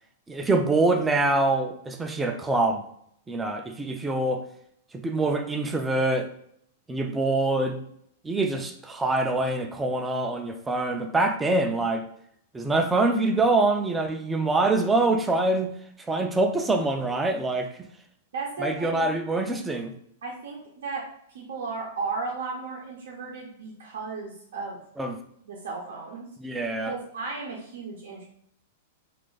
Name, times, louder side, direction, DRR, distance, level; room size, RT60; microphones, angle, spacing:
voice 1, 0.3-2.8 3.3-4.4 4.9-6.3 6.9-7.8 8.2-12.1 12.5-15.7 16.1-17.9 18.6-19.9 25.0-25.2 26.4-26.9, right 2 dB, 10° right, 4 dB, 0.3 m, -25 dB
voice 2, 18.3-19.1 20.2-21.0 21.3-24.8 25.4-26.3 26.8-28.2, right 4 dB, 80° right, -3 dB, 0.6 m, -35 dB
2.4 x 2.4 x 3.8 m, 0.70 s
hypercardioid pair, 140°, 0 cm